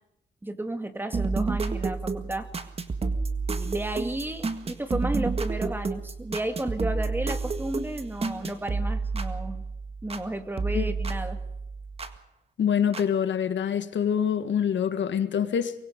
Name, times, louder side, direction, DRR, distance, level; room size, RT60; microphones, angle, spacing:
voice 1, 0.4-2.5 3.5-9.6 10.0-11.4, right 1 dB, 10° right, 2.2 m, -33 dB
sound 1, 1.1-10.3 10.6-12.2 12.9-13.0, right 4 dB, 35° right, 1.8 m, -30 dB
voice 2, 12.6-15.7, left 8 dB, 90° left, 1.8 m, -25 dB
24.5 x 21.5 x 5.3 m
wide cardioid pair, 160°, 18 cm